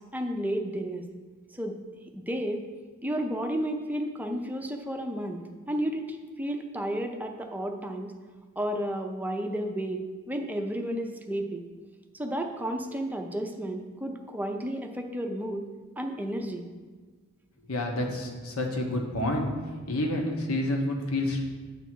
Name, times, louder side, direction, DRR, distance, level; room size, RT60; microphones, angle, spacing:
voice 1, 0.1-1.1 1.5-1.8 2.1-2.6 3.0-8.1 8.6-10.0 10.3-11.6 12.1-15.6 16.0-16.7, equal, 10° right, 3 dB, 0.6 m, -32 dB
voice 2, 17.7-19.5 19.9-21.4, left 1 dB, 75° left, 1 dB, 1.2 m, -29 dB
9.1 x 3.5 x 6.1 m, 1.4 s
head